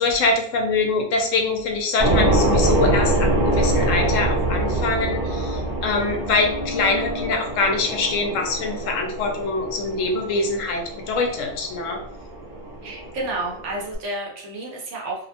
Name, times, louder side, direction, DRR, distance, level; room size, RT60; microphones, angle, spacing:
voice 1, 0.0-12.0, left 3 dB, 75° left, 3 dB, 0.9 m, -24 dB
sound 1, 2.0-14.0, right 1 dB, 40° right, 0.7 m, -24 dB
sound 2, 3.0-8.9, left 1 dB, 25° left, 0.7 m, -35 dB
voice 2, 12.8-15.3, right 2 dB, 65° right, -1 dB, 0.9 m, -30 dB
2.6 x 2.1 x 2.7 m, 0.63 s
omnidirectional pair, 1.4 m